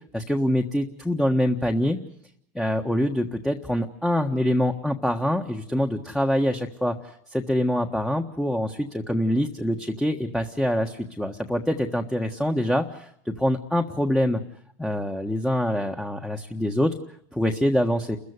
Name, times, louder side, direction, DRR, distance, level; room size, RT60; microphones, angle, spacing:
voice 1, 0.1-2.0 2.5-6.9 7.3-14.4 14.8-16.9 17.3-18.2, left 1 dB, 5° left, 3 dB, 1.4 m, -25 dB
29.0 x 15.0 x 9.6 m, 0.72 s
supercardioid pair, 120°, 9 cm